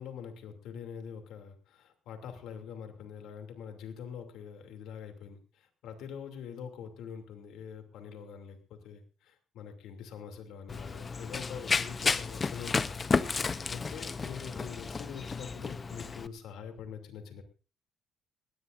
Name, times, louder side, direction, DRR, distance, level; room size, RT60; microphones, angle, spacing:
voice 1, 0.0-13.0 13.7-17.4, left 7 dB, 85° left, 5 dB, 2.8 m, -44 dB
Run, 10.7-16.3, left 4 dB, 35° left, 0.7 m, -32 dB
19.5 x 17.5 x 2.6 m, 0.34 s
cardioid pair, 90°, 0 cm